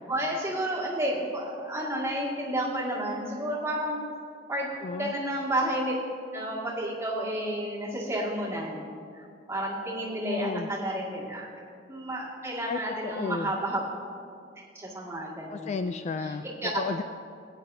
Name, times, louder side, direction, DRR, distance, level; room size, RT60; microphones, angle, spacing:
voice 1, 0.1-4.0 4.5-4.7 5.0-6.0 6.3-8.9 9.2-11.5 11.9-13.8 14.7-15.8 16.2-16.7, right 1 dB, 15° right, -5 dB, 2.0 m, -31 dB
voice 2, 4.8-5.1 10.3-10.7 12.7-13.5 15.5-16.4 16.8-17.0, left 4 dB, 40° left, 9 dB, 0.3 m, -32 dB
17.0 x 9.5 x 2.7 m, 2.3 s
head